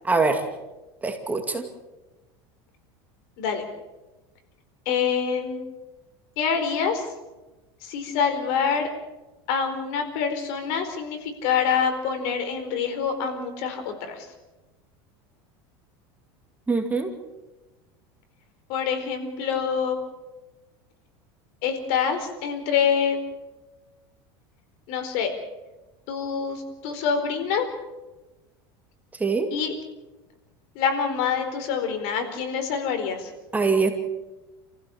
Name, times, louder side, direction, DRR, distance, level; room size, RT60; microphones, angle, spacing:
voice 1, 0.1-0.4 1.0-1.6 16.7-17.1 29.2-29.5 33.5-33.9, right 4 dB, 15° right, 5 dB, 2.5 m, -23 dB
voice 2, 4.9-5.6 6.4-7.0 7.8-8.9 9.5-14.3 18.7-20.0 21.6-23.2 24.9-25.3 26.1-27.6 29.5-29.7 30.7-33.3, left 6 dB, 65° left, 7 dB, 4.4 m, -26 dB
28.5 x 15.5 x 7.2 m, 1.1 s
supercardioid pair, 125°, 12 cm